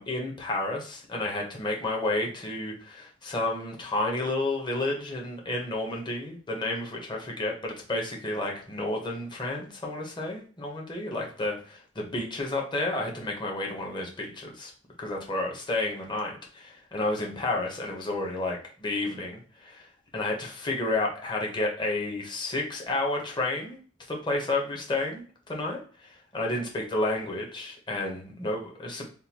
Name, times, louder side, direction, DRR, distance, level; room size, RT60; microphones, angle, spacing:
voice 1, 0.0-14.7 15.0-19.9 20.1-23.8 24.1-25.2 25.5-29.1, left 2 dB, 25° left, 0 dB, 0.9 m, -31 dB
3.7 x 2.3 x 2.8 m, 0.43 s
head